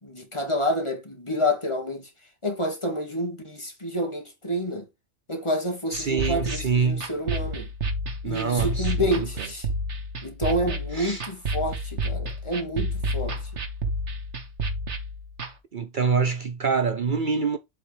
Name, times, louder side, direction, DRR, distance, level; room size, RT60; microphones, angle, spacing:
voice 1, 0.0-2.1 2.4-4.9 5.3-7.7 8.2-9.7 10.2-13.4, equal, 25° left, 2.2 m, -28 dB
voice 2, 5.9-7.1 8.2-9.1 10.9-11.2 15.7-17.6, right 5 dB, 50° right, 0.8 m, -25 dB
sound 1, 5.9-15.5, right 1 dB, 80° right, 1.8 m, -30 dB
8.1 x 5.1 x 3.5 m
omnidirectional pair, 1.2 m